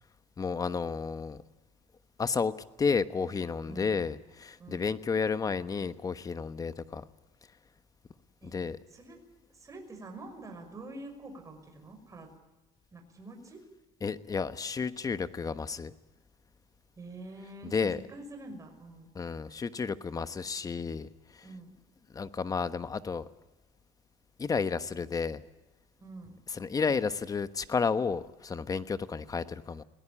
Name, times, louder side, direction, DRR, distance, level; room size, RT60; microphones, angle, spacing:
voice 1, 0.4-1.4 2.2-2.5 2.8-7.0 8.4-8.8 14.0-15.9 17.6-18.0 19.1-21.4 22.1-23.3 24.4-25.4 26.5-29.8, left 5 dB, 25° left, 12 dB, 1.1 m, -32 dB
voice 2, 3.7-4.2 4.6-5.0 8.4-8.6 8.9-9.2 9.5-12.3 12.9-13.6 17.0-19.1 21.4-21.7 26.0-26.4, right 2 dB, 25° right, 5 dB, 5.8 m, -46 dB
21.5 x 18.5 x 8.7 m, 1.1 s
cardioid pair, 105°, 13 cm